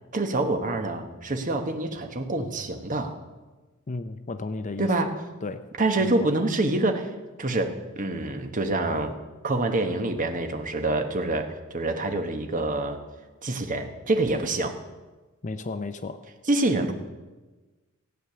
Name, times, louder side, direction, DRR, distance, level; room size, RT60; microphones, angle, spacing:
voice 1, 0.1-3.2 4.8-5.2 5.8-7.1 7.4-9.2 9.4-13.0 13.4-14.8 16.5-16.9, right 2 dB, 40° right, 6 dB, 1.1 m, -26 dB
voice 2, 3.9-4.9 5.4-5.7 6.2-6.3 15.4-16.2, left 3 dB, 35° left, 10 dB, 0.6 m, -33 dB
14.5 x 9.0 x 6.8 m, 1.2 s
head